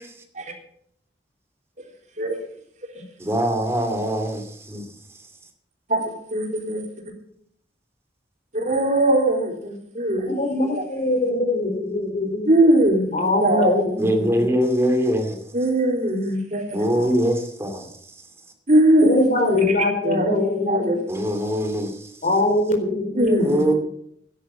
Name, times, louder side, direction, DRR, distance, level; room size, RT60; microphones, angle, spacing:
voice 1, 3.2-4.9 14.0-15.4 16.7-18.1 21.1-22.2 23.4-23.7, equal, 15° right, 5 dB, 2.5 m, -23 dB
voice 2, 5.9-6.8 8.5-10.3 10.6-10.8 12.5-13.1 13.4-13.8 15.5-16.8 18.7-19.7 20.0-20.4 20.7-21.0 23.1-23.7, right 1 dB, 45° right, 1 dB, 3.8 m, -20 dB
voice 3, 10.4-12.5 13.1-14.4 19.0-20.9 22.2-23.4, left 2 dB, 45° left, 4 dB, 4.1 m, -22 dB
13.0 x 11.0 x 7.5 m, 0.70 s
head